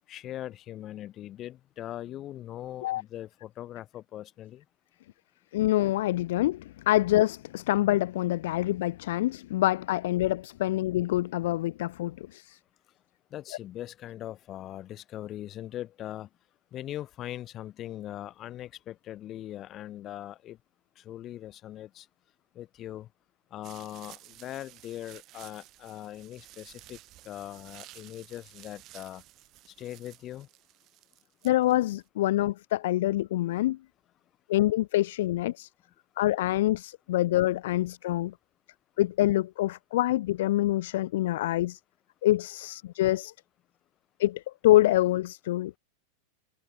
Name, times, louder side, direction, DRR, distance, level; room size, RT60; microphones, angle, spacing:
voice 1, 0.1-4.6 13.3-16.3 16.7-20.6 21.0-22.1 22.5-23.1 23.5-27.0 27.2-29.2 29.7-30.5, left 13 dB, 30° left, 2.8 m, -40 dB
voice 2, 5.5-12.6 31.4-33.8 34.5-35.7 36.2-38.3 39.0-41.8 42.2-43.3 44.2-45.7, left 15 dB, 55° left, 0.5 m, -26 dB
sound 1, 23.6-32.0, right 17 dB, 35° right, 8.0 m, -53 dB
figure-of-eight pair, 90°, 0 cm